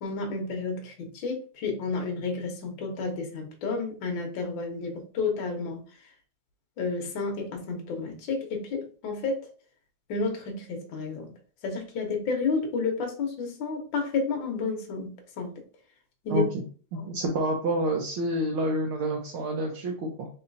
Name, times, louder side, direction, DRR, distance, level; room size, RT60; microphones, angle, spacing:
voice 1, 0.0-5.8 6.8-9.5 10.1-11.3 11.6-15.5 16.2-16.5 17.0-17.1, left 4 dB, 65° left, 2 dB, 1.2 m, -31 dB
voice 2, 16.3-16.6 16.9-20.3, right 1 dB, 90° right, 1 dB, 1.1 m, -28 dB
4.1 x 3.9 x 2.6 m, 0.40 s
omnidirectional pair, 3.3 m